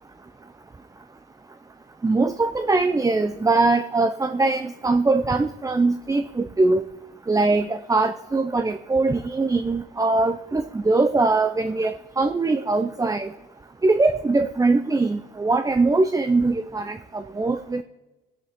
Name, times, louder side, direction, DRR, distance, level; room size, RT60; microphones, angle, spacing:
voice 1, 2.0-6.8 7.3-13.3 13.8-17.8, right 3 dB, 15° right, 9 dB, 0.6 m, -22 dB
22.0 x 10.5 x 3.7 m, 1.1 s
cardioid pair, 90°, 20 cm